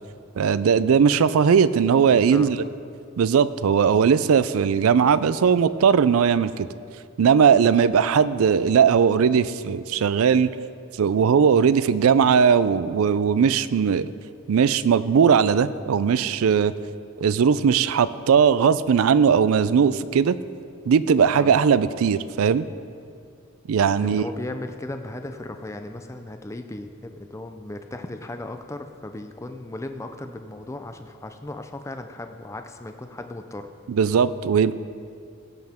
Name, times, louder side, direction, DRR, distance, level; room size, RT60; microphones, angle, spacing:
voice 1, 0.4-2.6 3.2-6.7 7.2-10.5 11.0-14.1 14.5-16.7 17.2-20.4 20.9-22.6 23.7-24.3 33.9-34.7, right 6 dB, 75° right, 16 dB, 0.4 m, -19 dB
voice 2, 2.0-2.6 7.5-7.7 21.3-21.6 24.0-33.7, left 2 dB, 15° left, 7 dB, 0.4 m, -36 dB
17.0 x 7.6 x 3.6 m, 2.3 s
head